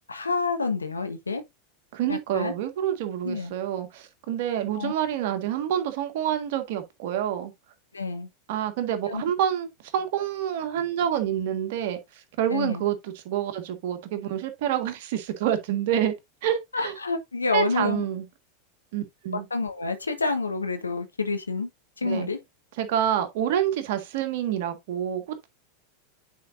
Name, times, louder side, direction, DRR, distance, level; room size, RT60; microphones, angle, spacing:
voice 1, 0.1-1.4 2.1-2.5 3.2-3.5 4.7-4.9 7.9-8.3 9.1-9.2 12.5-12.8 16.7-18.0 19.5-21.7 22.0-22.4, left 4 dB, 85° left, 1.3 m, -28 dB
voice 2, 1.9-7.5 8.5-9.7 9.9-12.0 12.4-16.1 16.4-16.9 17.5-18.3 18.9-19.5 22.0-22.3 22.8-25.5, right 10 dB, 60° right, 1.8 m, -27 dB
9.5 x 5.0 x 2.7 m
figure-of-eight pair, 90°, 0 cm